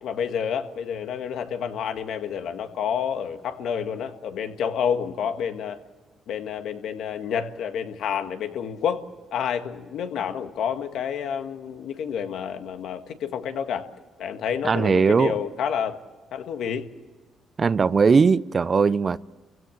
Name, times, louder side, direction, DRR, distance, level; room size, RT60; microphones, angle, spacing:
voice 1, 0.0-5.8 6.3-9.0 9.3-13.9 14.2-16.0 16.3-16.9, left 8 dB, 75° left, 1.8 m, -29 dB
voice 2, 14.6-15.4 17.6-19.2, right 5 dB, 40° right, 0.6 m, -19 dB
29.0 x 16.5 x 7.5 m
cardioid pair, 90°, 0 cm